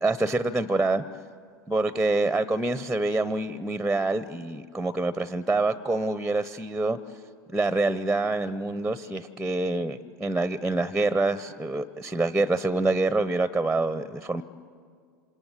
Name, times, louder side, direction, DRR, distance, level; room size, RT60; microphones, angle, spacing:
voice 1, 0.0-1.0 1.7-7.0 7.5-14.4, right 2 dB, 5° right, 15 dB, 0.8 m, -26 dB
27.5 x 26.0 x 8.1 m, 2.1 s
hypercardioid pair, 90°, 11 cm